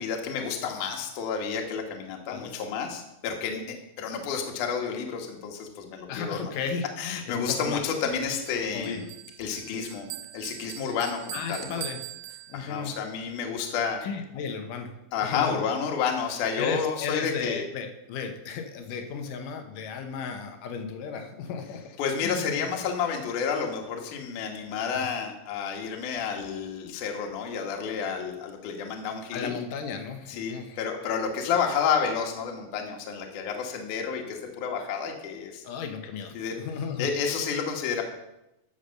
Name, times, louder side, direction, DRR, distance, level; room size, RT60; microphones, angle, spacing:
voice 1, 0.0-6.5 7.0-9.1 9.4-11.8 12.5-14.0 15.1-17.6 22.0-29.5 30.3-35.6 36.3-36.6 37.0-38.0, left 6 dB, 60° left, 2 dB, 2.3 m, -30 dB
voice 2, 2.3-2.6 6.1-7.8 8.7-9.1 11.3-12.0 12.5-13.0 14.0-15.0 15.2-15.6 16.6-21.8 22.2-22.7 24.9-25.1 29.3-30.8 35.6-37.1, left 6 dB, 80° left, 6 dB, 1.9 m, -34 dB
Bell, 8.5-13.0, right 15 dB, 85° right, 2.3 m, -42 dB
11.0 x 6.8 x 6.5 m, 0.91 s
omnidirectional pair, 5.1 m